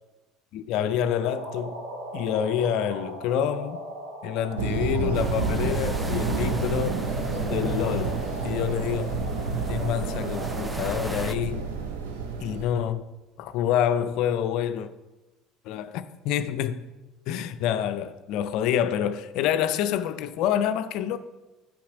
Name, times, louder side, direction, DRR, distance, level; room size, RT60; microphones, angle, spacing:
voice 1, 0.5-1.8 2.1-3.8 4.2-7.0 7.3-8.2 8.4-9.2 9.7-11.7 12.4-13.0 13.4-14.9 15.7-16.9 17.3-21.2, left 9 dB, 60° left, 0.4 m, -27 dB
sound 1, 1.0-11.0, right 1 dB, 90° right, 1.8 m, -38 dB
sound 2, 4.6-12.6, right 4 dB, 75° right, 0.8 m, -29 dB
sound 3, 5.1-11.3, right 2 dB, 10° right, 0.5 m, -40 dB
8.5 x 6.0 x 4.9 m
figure-of-eight pair, 60°, 0 cm